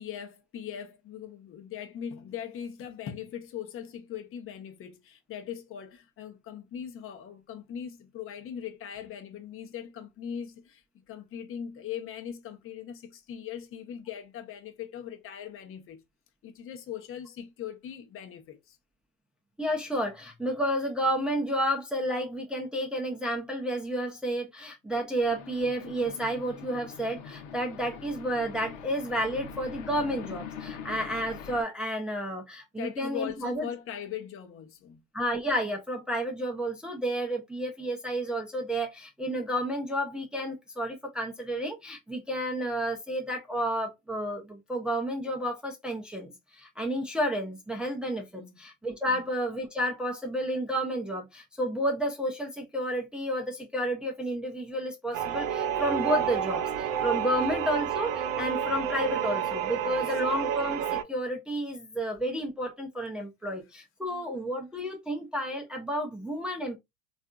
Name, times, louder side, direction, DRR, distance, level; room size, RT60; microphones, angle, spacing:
voice 1, 0.0-16.0 16.4-18.8 32.8-35.0 48.3-48.5 49.1-49.2 57.2-57.4 59.8-60.1, left 9 dB, 30° left, 0.8 m, -40 dB
voice 2, 19.6-33.7 35.1-66.8, equal, ahead, 0.6 m, -31 dB
sound 1, 25.2-31.6, left 7 dB, 70° left, 0.9 m, -43 dB
sound 2, 55.1-61.0, right 9 dB, 65° right, 0.7 m, -30 dB
3.4 x 2.5 x 2.3 m
hypercardioid pair, 100°, 40 cm